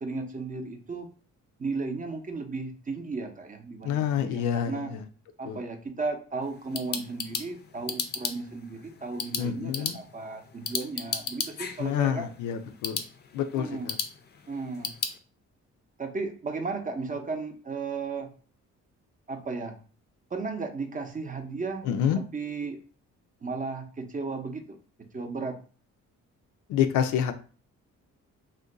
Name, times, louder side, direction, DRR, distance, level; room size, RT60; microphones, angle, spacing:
voice 1, 0.0-1.1 1.6-4.9 5.4-12.3 13.6-13.9 14.5-14.9 16.0-18.3 19.3-19.7 20.3-21.9 22.1-22.8 23.4-24.6 25.1-25.6, right 4 dB, 25° right, 4 dB, 0.6 m, -35 dB
voice 2, 3.8-5.0 5.5-5.6 9.4-10.0 11.8-13.0 13.3-14.0 21.8-22.2 26.7-27.3, left 9 dB, 90° left, 9 dB, 0.4 m, -27 dB
sound 1, 6.4-15.2, left 5 dB, 35° left, 0.4 m, -36 dB
2.5 x 2.2 x 3.8 m, 0.38 s
cardioid pair, 90°, 30 cm